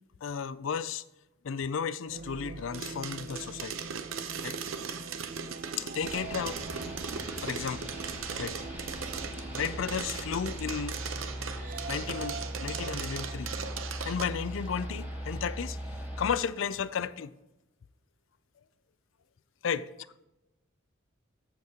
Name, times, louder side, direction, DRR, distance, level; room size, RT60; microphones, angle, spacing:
voice 1, 0.2-1.0 1.4-3.7 4.4-4.6 5.8-6.6 7.4-7.9 8.4-8.6 9.5-11.0 11.9-13.5 14.0-15.8 16.2-17.3 19.6-19.9, left 7 dB, 70° left, 0.4 m, -33 dB
sound 1, 2.0-14.2, right 3 dB, 45° right, 0.5 m, -45 dB
sound 2, 2.7-14.2, right 6 dB, 80° right, 0.7 m, -38 dB
sound 3, 6.0-16.4, equal, 10° right, 2.0 m, -40 dB
14.5 x 5.2 x 2.8 m
head